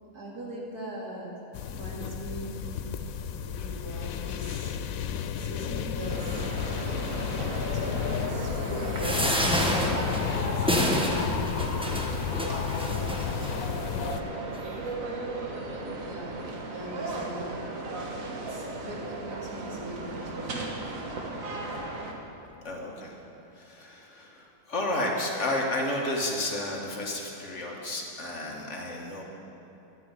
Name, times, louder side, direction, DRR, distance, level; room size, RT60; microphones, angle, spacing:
voice 1, 0.1-1.3 1.7-2.9 3.4-4.7 5.4-6.4 6.8-7.0 7.4-11.8 12.3-14.6 15.7-17.6 18.5-20.6, right 1 dB, 80° right, -3 dB, 2.9 m, -41 dB
sound 1, 1.5-14.2, left 8 dB, 70° left, 1.0 m, -32 dB
sound 2, 6.1-22.1, right 2 dB, 60° right, 1.8 m, -36 dB
sound 3, 9.0-13.5 14.2-14.3 14.5-14.6, equal, 5° right, 1.0 m, -29 dB
voice 2, 22.6-23.2 23.5-29.2, left 1 dB, 50° left, -1 dB, 2.1 m, -32 dB
11.5 x 9.5 x 9.1 m, 2.9 s
omnidirectional pair, 1.6 m